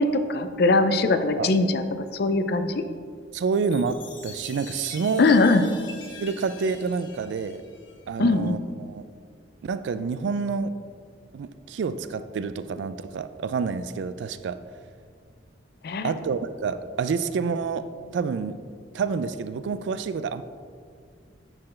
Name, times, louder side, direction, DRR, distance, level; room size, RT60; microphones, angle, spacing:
voice 1, 0.0-1.8 2.1-2.8 5.2-5.6 8.2-8.6 15.8-16.1, left 3 dB, 55° left, 9 dB, 0.4 m, -21 dB
voice 2, 3.3-5.3 6.2-7.6 8.1-9.1 9.6-10.8 11.3-14.6 16.0-18.6 18.9-20.4, right 5 dB, 70° right, 12 dB, 0.3 m, -28 dB
Chime, 3.6-8.2, left 5 dB, 85° left, 1.0 m, -45 dB
9.7 x 4.4 x 3.2 m, 2.1 s
head